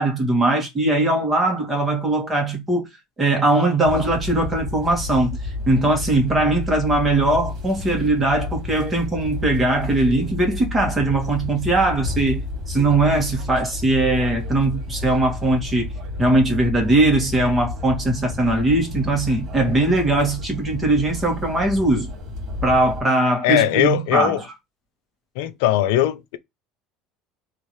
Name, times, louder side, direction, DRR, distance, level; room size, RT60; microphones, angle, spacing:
voice 1, 0.0-2.9 3.2-15.9 16.2-22.1 22.6-24.4, right 2 dB, 20° right, 2.0 m, -20 dB
sound 1, 3.8-23.0, left 2 dB, 50° right, 2.2 m, -31 dB
voice 2, 23.4-24.4 25.4-26.4, left 12 dB, 80° left, 0.5 m, -20 dB
3.6 x 2.9 x 4.8 m
supercardioid pair, 100°, 0 cm